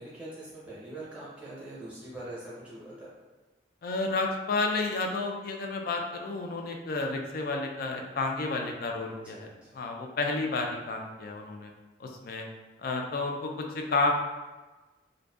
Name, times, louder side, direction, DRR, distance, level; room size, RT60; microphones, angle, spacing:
voice 1, 0.0-3.1 9.2-9.8, right 1 dB, 5° right, -8 dB, 0.7 m, -43 dB
voice 2, 3.8-9.5 9.7-11.7 12.0-12.5 12.8-14.1, left 3 dB, 50° left, 2 dB, 0.3 m, -31 dB
2.5 x 2.2 x 2.3 m, 1.2 s
head